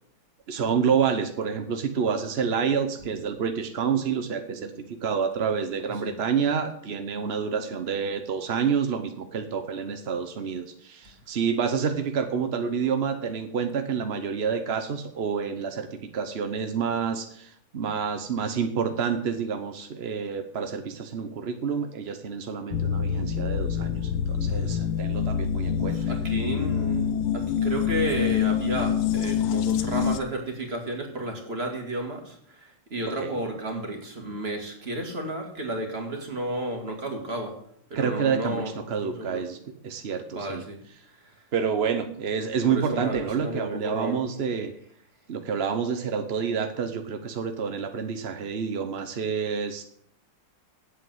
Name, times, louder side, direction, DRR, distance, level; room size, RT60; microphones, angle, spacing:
voice 1, 0.5-15.9 16.1-26.0 33.2-33.4 37.9-39.6 39.8-40.6 41.5-44.7 45.3-49.8, right 6 dB, 65° right, 7 dB, 0.6 m, -28 dB
sound 1, 22.7-30.2, left 8 dB, 90° left, 1.6 m, -26 dB
voice 2, 25.9-37.5 37.9-38.7 39.0-39.4 40.3-40.8 42.7-44.2, right 1 dB, 30° right, 2 dB, 2.2 m, -32 dB
8.3 x 8.1 x 7.9 m, 0.65 s
omnidirectional pair, 2.4 m